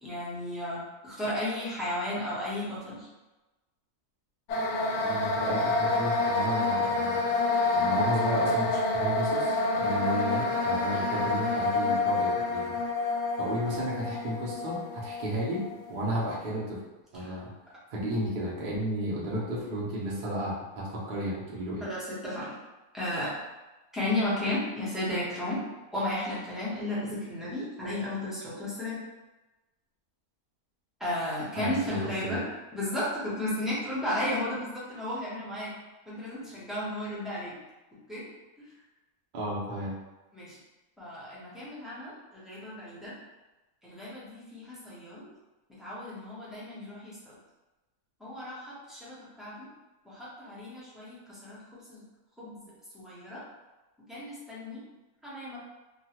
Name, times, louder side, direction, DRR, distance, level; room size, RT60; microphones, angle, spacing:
voice 1, 0.0-3.1 10.9-11.1 17.2-17.3 21.8-22.5 22.9-23.3 23.9-25.6 25.9-29.0 31.0-32.4 32.7-35.7 36.1-37.5 38.1-38.3 40.3-40.6 41.0-43.2 43.8-45.3 45.8-47.4 48.2-49.7 50.0-52.0 52.4-53.4 54.1-54.8 55.2-55.6, left 1 dB, ahead, -9 dB, 0.6 m, -34 dB
sound 1, 4.5-16.4, left 2 dB, 65° left, 0.7 m, -28 dB
voice 2, 5.0-7.2 7.7-12.7 13.4-16.8 17.1-17.5 17.9-21.8 31.6-32.4 39.3-40.0, equal, 50° right, -4 dB, 0.6 m, -33 dB
2.9 x 2.2 x 2.8 m, 1.1 s
omnidirectional pair, 1.6 m